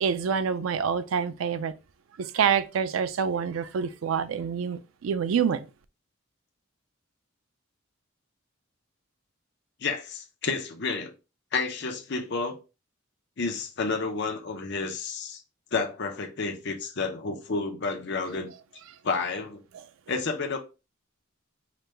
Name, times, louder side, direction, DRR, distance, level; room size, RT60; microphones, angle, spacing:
voice 1, 0.0-1.7 2.2-5.7, right 7 dB, 80° right, 0.4 m, -27 dB
voice 2, 9.8-11.1 11.5-12.6 13.4-15.4 15.7-18.5 19.0-19.6 20.1-20.6, left 4 dB, 60° left, 0.7 m, -30 dB
4.9 x 2.2 x 3.2 m
head